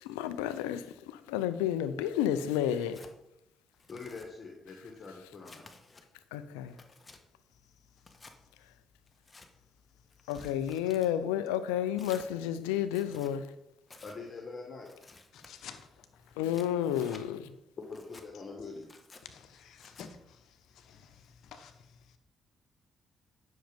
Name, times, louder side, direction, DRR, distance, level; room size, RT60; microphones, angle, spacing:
voice 1, 0.0-3.0 6.3-6.8 10.3-13.5 16.4-17.5, left 10 dB, 90° left, 0.6 m, -31 dB
Tearing, 2.6-3.1 3.7-4.3 4.9-6.0 6.5-7.2 8.0-8.4 9.1-9.5 10.1-11.1 11.9-12.3 12.8-13.3 13.9-14.2 14.8-15.5 16.2-17.2 17.8-18.3 18.8-19.2 19.8-20.1, left 3 dB, 30° left, 1.5 m, -54 dB
voice 2, 3.9-5.7 14.0-14.9 17.8-18.9, left 4 dB, 50° left, 1.8 m, -44 dB
voice 3, 15.3-16.1 19.3-21.9, left 7 dB, 70° left, 1.2 m, -51 dB
10.0 x 6.5 x 5.2 m
hypercardioid pair, 50°, 0 cm